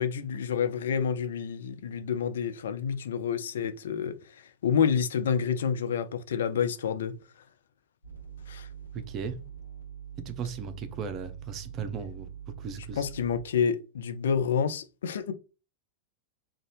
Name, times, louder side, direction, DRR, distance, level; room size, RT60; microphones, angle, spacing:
voice 1, 0.0-7.1 8.5-8.7 13.0-15.3, left 7 dB, 60° left, 0.4 m, -28 dB
sound 1, 8.0-13.6, right 9 dB, 80° left, 0.8 m, -44 dB
voice 2, 8.9-9.4 10.2-13.1, right 6 dB, 35° right, 0.5 m, -37 dB
2.6 x 2.3 x 3.2 m
figure-of-eight pair, 90°, 0 cm